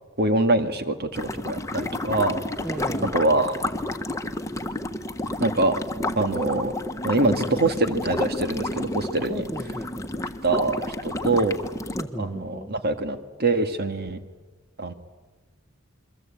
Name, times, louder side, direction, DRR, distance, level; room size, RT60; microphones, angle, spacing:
voice 1, 0.2-2.4 3.1-3.6 5.4-5.8 6.2-6.7 7.0-9.3 10.4-11.6 12.2-14.2 14.8-14.9, right 2 dB, 50° right, 9 dB, 2.0 m, -24 dB
sound 1, 1.1-12.0, left 1 dB, 15° left, 1.4 m, -31 dB
voice 2, 2.6-3.3 9.3-10.4 11.9-12.7, equal, 5° right, 6 dB, 1.3 m, -35 dB
28.5 x 23.0 x 8.8 m, 1.2 s
head